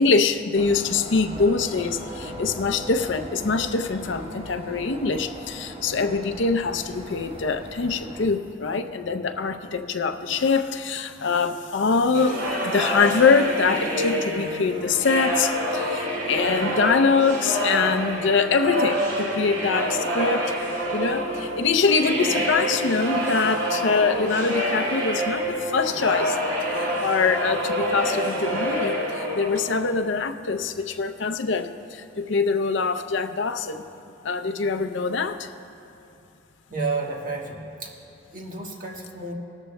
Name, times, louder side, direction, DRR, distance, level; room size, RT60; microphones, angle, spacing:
voice 1, 0.0-20.5 20.9-26.4 26.8-33.8 34.2-35.5, left 4 dB, 65° left, 8 dB, 0.6 m, -24 dB
sound 1, 0.5-8.3, equal, 30° right, 1.1 m, -39 dB
sound 2, 12.1-30.0, equal, 75° right, 2.5 m, -27 dB
voice 2, 36.7-37.9 38.3-39.3, right 3 dB, 45° right, -1 dB, 1.4 m, -31 dB
18.5 x 13.5 x 2.2 m, 2.7 s
head